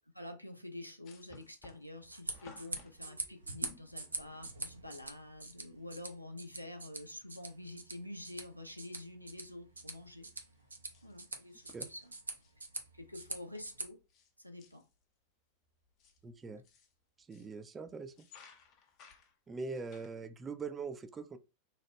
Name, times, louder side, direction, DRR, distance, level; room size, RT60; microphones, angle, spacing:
voice 1, 0.1-10.3 11.0-12.1 12.9-14.0 14.4-14.8, left 1 dB, 90° left, 0.5 m, -48 dB
sound 1, 1.0-4.6 5.8-5.9 6.1-6.2 6.9-7.3 7.6-8.5 8.8-9.1 9.4-14.3 14.6-15.0 15.7-17.6 18.0-20.2, left 5 dB, 40° left, 0.6 m, -61 dB
sound 2, 2.0-13.8, right 3 dB, 80° right, 0.5 m, -45 dB
voice 2, 16.2-16.6 17.3-18.3 19.5-21.4, right 4 dB, 20° right, 0.4 m, -42 dB
2.9 x 2.0 x 3.0 m
figure-of-eight pair, 90°, 0 cm